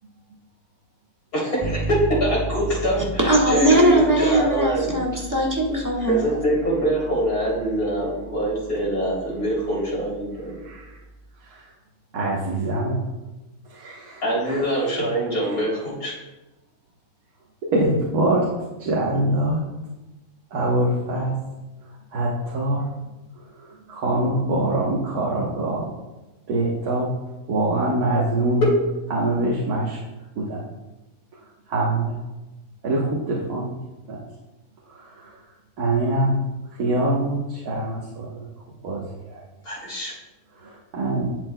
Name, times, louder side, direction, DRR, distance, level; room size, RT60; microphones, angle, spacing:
voice 1, 1.3-4.9 6.0-10.6 14.2-16.1 39.6-40.1, right 1 dB, 75° left, -6 dB, 3.6 m, -24 dB
Bass guitar, 1.6-11.3, right 2 dB, 25° left, 0.7 m, -35 dB
voice 2, 3.3-6.2, right 1 dB, 15° right, -3 dB, 1.3 m, -19 dB
voice 3, 10.6-11.0 11.4-11.7 12.1-13.0 13.7-14.6 15.5-15.6 17.7-18.4 18.8-19.6 20.5-21.3 22.1-22.8 23.6-26.0 26.5-27.1 27.5-28.7 29.1-30.0 30.4-30.6 31.7-32.1 32.8-33.8 34.1-34.3 34.9-35.4 35.8-36.4 36.8-38.5 38.8-39.4 40.6-41.4, right 1 dB, 90° right, -4 dB, 1.6 m, -24 dB
11.0 x 7.8 x 2.2 m, 1.1 s
omnidirectional pair, 1.6 m